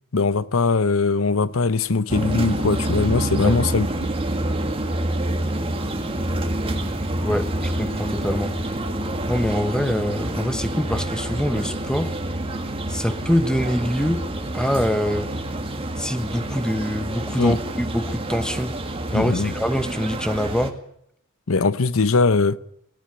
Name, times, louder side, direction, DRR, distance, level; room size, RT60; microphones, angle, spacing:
voice 1, 0.1-3.9 17.4-17.6 19.1-19.5 21.5-22.6, left 4 dB, 70° left, 0.8 m, -20 dB
sound 1, 2.1-20.7, right 1 dB, 25° right, 2.0 m, -27 dB
voice 2, 7.2-8.6 9.3-12.2 12.9-14.3 14.5-15.3 15.9-18.8 19.1-20.8, equal, 5° left, 1.1 m, -24 dB
19.0 x 17.0 x 8.9 m
head